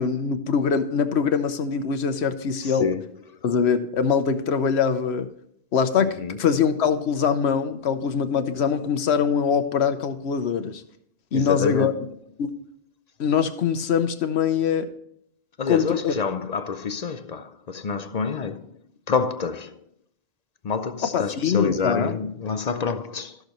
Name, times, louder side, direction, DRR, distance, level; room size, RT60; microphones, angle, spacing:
voice 1, 0.0-2.9 3.4-5.3 5.7-10.8 11.3-11.9 12.4-12.5 13.2-14.9 15.7-16.1 21.1-22.2, left 6 dB, 85° left, 1.1 m, -23 dB
voice 2, 2.6-3.1 6.2-6.4 11.3-12.1 15.6-18.7 19.1-19.8 20.6-23.4, left 5 dB, 50° left, 0.6 m, -27 dB
14.5 x 6.5 x 3.0 m
omnidirectional pair, 1.1 m